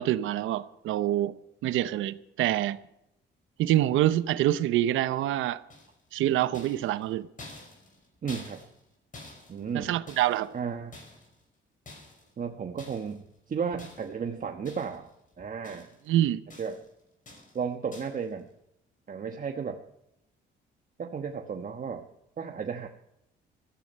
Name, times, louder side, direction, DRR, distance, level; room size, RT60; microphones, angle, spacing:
voice 1, 0.0-1.3 1.6-2.8 3.6-5.6 6.1-7.3 9.7-10.5 16.1-16.4, right 13 dB, 90° right, 0.8 m, -26 dB
sound 1, 5.7-6.1 6.5-8.9 9.1-10.6 10.9-11.4 11.9-12.3 12.8-13.2 13.8-14.3 14.6-15.1 15.4-16.1 16.5-16.9 17.3-17.6 17.9-18.3, left 2 dB, 40° left, 5.6 m, -49 dB
voice 2, 8.2-8.6 9.5-10.0 10.5-11.0 12.4-15.1 15.4-15.9 16.6-16.8 17.5-18.5 19.1-19.8 21.0-22.0 22.4-22.9, right 6 dB, 45° right, 1.2 m, -34 dB
14.5 x 13.5 x 5.5 m
cardioid pair, 90°, 20 cm